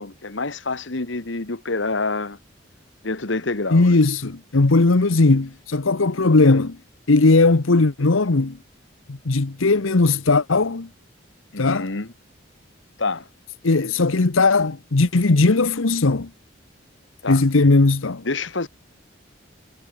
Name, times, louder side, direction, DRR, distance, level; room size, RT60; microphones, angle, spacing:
voice 1, 0.0-2.4 3.0-4.0 11.5-12.1 13.0-13.3 17.2-17.4 18.2-18.7, left 3 dB, 70° left, 1.5 m, -27 dB
voice 2, 3.7-6.8 7.1-8.6 9.1-10.9 11.6-11.9 13.6-16.3 17.3-18.2, left 3 dB, 90° left, 1.0 m, -18 dB
head